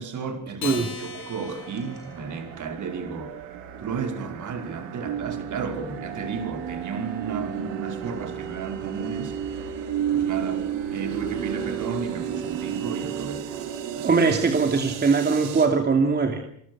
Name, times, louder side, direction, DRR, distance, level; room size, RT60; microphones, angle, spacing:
voice 1, 0.0-3.3 3.8-9.7 10.1-10.7 10.9-13.5 13.9-14.2, right 5 dB, 45° right, 5.3 m, -33 dB
Acoustic guitar, 0.6-3.2, left 6 dB, 60° left, 7.7 m, -39 dB
sound 1, 0.7-15.7, right 9 dB, 80° right, 5.2 m, -33 dB
voice 2, 14.0-16.4, right 4 dB, 25° right, 2.8 m, -21 dB
27.0 x 21.0 x 6.4 m
cardioid pair, 125°, 42 cm